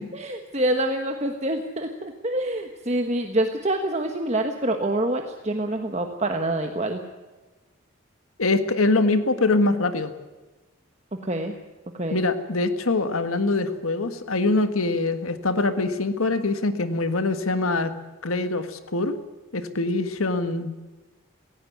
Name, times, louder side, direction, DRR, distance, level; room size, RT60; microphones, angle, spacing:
voice 1, 0.1-7.0 11.2-11.5 12.0-12.2, right 1 dB, 30° right, 5 dB, 1.3 m, -26 dB
voice 2, 8.4-10.1 12.1-17.9 18.2-19.2 19.5-20.9, left 2 dB, 85° left, 10 dB, 1.6 m, -24 dB
17.5 x 16.5 x 9.6 m, 1.2 s
head